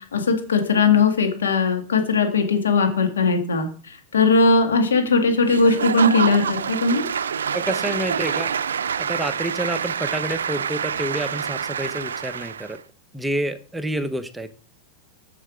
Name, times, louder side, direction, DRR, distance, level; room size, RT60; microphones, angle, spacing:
voice 1, 0.1-7.0, left 4 dB, 85° left, 5 dB, 1.8 m, -19 dB
Applause / Crowd, 5.4-12.8, right 7 dB, 85° right, 0.4 m, -27 dB
voice 2, 7.5-8.5 9.0-12.8 13.1-14.5, right 1 dB, 5° right, 9 dB, 0.8 m, -28 dB
6.7 x 6.3 x 5.0 m, 0.41 s
hypercardioid pair, 100°, 0 cm